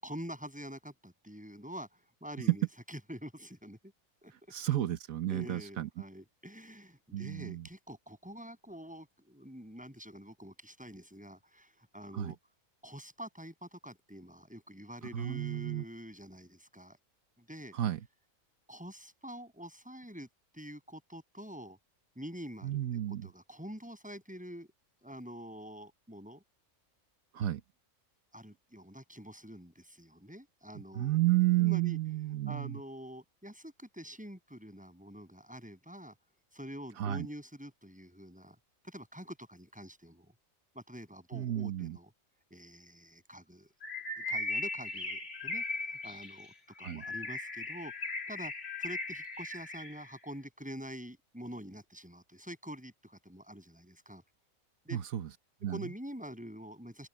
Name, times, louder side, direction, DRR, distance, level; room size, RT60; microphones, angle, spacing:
voice 1, 0.0-3.9 4.2-4.3 5.3-12.4 12.8-17.0 17.4-17.7 18.7-20.3 20.5-21.8 22.1-22.8 23.1-24.7 25.0-26.4 28.3-31.2 31.6-32.0 32.5-36.1 36.5-38.6 38.8-40.3 40.7-42.1 42.5-43.7 44.2-48.5 48.8-54.2 54.8-55.0 55.6-57.1, equal, 5° right, 6.5 m, -46 dB
voice 2, 4.5-5.9 7.1-7.7 12.1-12.3 15.1-15.8 17.7-18.0 22.6-23.3 27.3-27.6 30.9-32.8 37.0-37.3 41.3-42.0 46.8-47.0 54.9-55.3 55.6-55.8, right 14 dB, 85° right, 1.4 m, -31 dB
Bird, 43.8-50.1, left 2 dB, 45° left, 2.4 m, -38 dB
open air
omnidirectional pair, 1.4 m